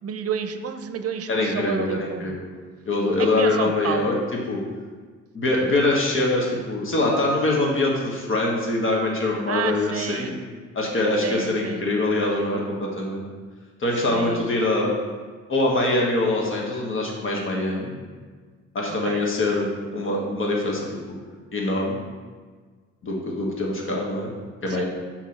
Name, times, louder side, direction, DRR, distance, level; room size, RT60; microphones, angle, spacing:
voice 1, 0.0-2.4 3.3-4.2 9.5-10.4 11.2-11.8 14.1-14.4 18.9-19.3 24.7-24.8, right 7 dB, 50° right, 9 dB, 0.7 m, -30 dB
voice 2, 1.3-2.5 2.8-4.2 4.5-4.6 5.3-10.4 10.7-13.2 13.8-14.9 15.5-17.9 18.7-21.0 21.5-22.0 23.0-24.3 24.6-24.8, left 2 dB, 45° left, -2 dB, 1.6 m, -24 dB
6.0 x 4.6 x 5.8 m, 1.5 s
cardioid pair, 90°, 30 cm